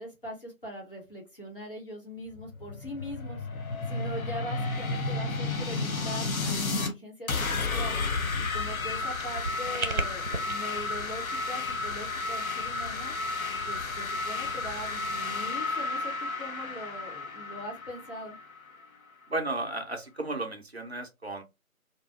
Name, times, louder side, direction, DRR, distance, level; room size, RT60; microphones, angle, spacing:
voice 1, 0.0-3.5 3.9-8.0 8.4-13.1 13.7-18.4, equal, 40° left, 0.9 m, -41 dB
sound 1, 2.3-6.9 7.3-18.8, left 3 dB, 75° left, 0.7 m, -32 dB
sound 2, 8.6-10.5, right 2 dB, 75° right, 0.8 m, -34 dB
voice 2, 19.3-21.4, right 2 dB, 50° right, 0.6 m, -34 dB
2.6 x 2.1 x 2.3 m
figure-of-eight pair, 170°, 43 cm